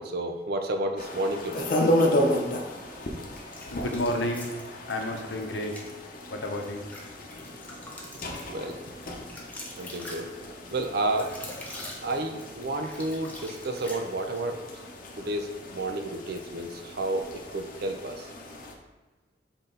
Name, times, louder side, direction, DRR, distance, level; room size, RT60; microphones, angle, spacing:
voice 1, 0.0-1.7 8.5-8.8 9.8-10.3 10.7-11.3 12.0-14.6 15.2-17.3 17.5-18.3, right 2 dB, 60° right, 5 dB, 0.6 m, -31 dB
sound 1, 1.0-18.7, left 1 dB, 50° left, 0.8 m, -33 dB
sound 2, 3.3-5.0 5.6-5.9 6.4-14.4, left 1 dB, 10° left, 0.9 m, -44 dB
voice 2, 3.7-5.7 6.3-6.9, left 1 dB, 90° left, 2 dB, 0.8 m, -31 dB
6.0 x 4.0 x 3.9 m, 1.3 s
head